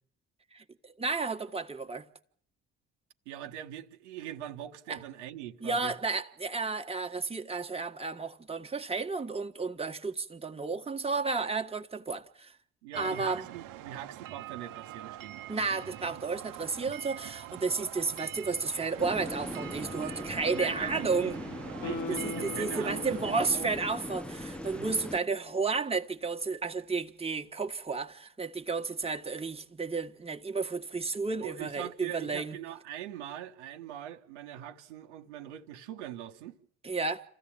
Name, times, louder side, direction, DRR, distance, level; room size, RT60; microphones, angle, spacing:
voice 1, 1.0-2.0 4.9-5.0 5.6-12.5 12.9-13.4 15.5-21.4 22.2-32.6 36.8-37.2, right 4 dB, 15° right, 1.6 m, -32 dB
voice 2, 3.2-5.9 12.8-15.4 20.5-21.3 21.8-23.7 24.7-24.9 31.4-36.6, right 11 dB, 85° right, 1.4 m, -42 dB
sound 1, 12.9-23.5, right 13 dB, 65° right, 1.2 m, -45 dB
sound 2, 19.0-25.2, left 1 dB, 5° left, 1.1 m, -40 dB
Guitar, 21.8-25.1 25.4-25.5, left 3 dB, 70° left, 1.6 m, -41 dB
27.0 x 15.0 x 8.7 m
hypercardioid pair, 55°, 34 cm